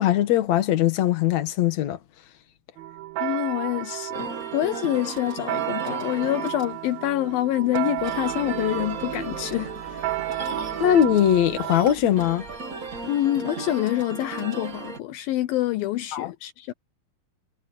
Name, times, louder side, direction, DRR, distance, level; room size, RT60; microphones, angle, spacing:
voice 1, 0.0-2.0 10.8-12.4 16.1-16.3, left 11 dB, 55° left, 2.6 m, -20 dB
sound 1, 2.8-11.9, right 15 dB, 85° right, 1.6 m, -32 dB
voice 2, 3.2-10.2 13.1-16.7, left 14 dB, 80° left, 2.5 m, -26 dB
sound 2, 4.1-15.0, right 4 dB, 50° right, 0.9 m, -37 dB
sound 3, 8.0-13.3, equal, 20° right, 4.2 m, -45 dB
omnidirectional pair, 4.3 m